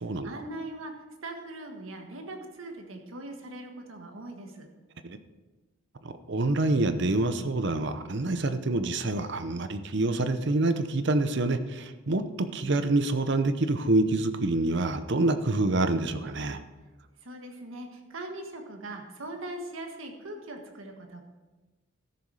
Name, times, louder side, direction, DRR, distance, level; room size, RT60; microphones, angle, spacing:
voice 1, 0.2-0.9 1.2-4.7 17.2-21.2, right 1 dB, 75° right, 3 dB, 1.6 m, -40 dB
voice 2, 6.0-16.6, right 2 dB, 55° right, 10 dB, 0.7 m, -27 dB
13.5 x 6.9 x 4.9 m, 1.2 s
head